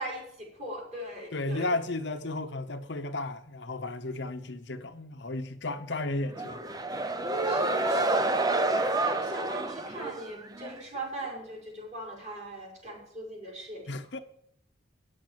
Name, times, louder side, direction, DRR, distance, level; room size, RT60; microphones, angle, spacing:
voice 1, 0.0-1.7 7.4-8.3 8.6-13.9, right 1 dB, 35° right, 5.0 m, -40 dB
voice 2, 1.3-6.6 13.9-14.2, left 2 dB, 60° left, 0.8 m, -34 dB
sound 1, 6.3-10.8, right 2 dB, 20° right, 0.5 m, -28 dB
9.9 x 7.7 x 7.3 m
head